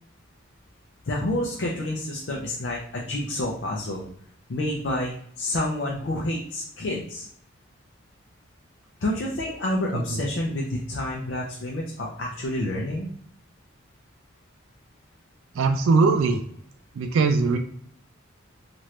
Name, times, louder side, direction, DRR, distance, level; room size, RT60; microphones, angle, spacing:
voice 1, 1.1-4.1 4.5-7.3 9.0-13.1, left 1 dB, 60° left, -2 dB, 0.5 m, -29 dB
voice 2, 9.9-10.2 15.5-16.4 16.9-17.6, right 4 dB, 90° right, 5 dB, 0.3 m, -21 dB
2.8 x 2.5 x 3.1 m, 0.66 s
head